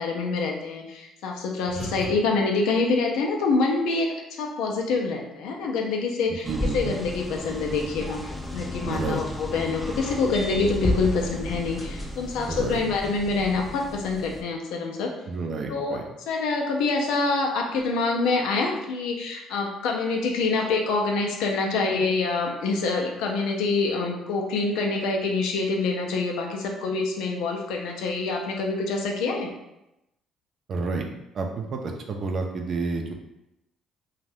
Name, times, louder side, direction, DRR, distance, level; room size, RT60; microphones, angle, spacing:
voice 1, 0.0-6.5 6.7-15.1 15.7-16.0 16.3-29.5, left 3 dB, 85° left, 1 dB, 0.5 m, -26 dB
voice 2, 1.7-2.1 6.5-7.0 8.8-9.2 12.5-12.8 15.3-16.0 30.7-31.0 31.3-33.1, right 3 dB, 50° right, 2 dB, 0.5 m, -30 dB
sound 1, 6.4-14.4, left 1 dB, 5° left, 0.5 m, -33 dB
2.6 x 2.3 x 3.3 m, 0.88 s
supercardioid pair, 80°, 0 cm